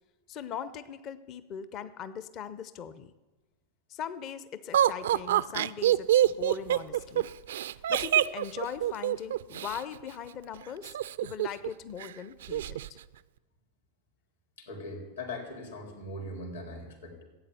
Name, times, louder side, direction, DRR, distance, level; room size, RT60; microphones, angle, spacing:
voice 1, 0.3-3.1 3.9-7.3 7.9-13.0, left 8 dB, 35° left, 15 dB, 0.7 m, -40 dB
Laughter, 4.7-9.8 10.8-11.7 12.0-12.1 12.4-12.9, right 12 dB, 60° right, 0.4 m, -26 dB
voice 2, 14.6-17.2, left 1 dB, 75° left, 1 dB, 3.8 m, -40 dB
15.5 x 8.7 x 8.3 m, 1.2 s
figure-of-eight pair, 90°, 0 cm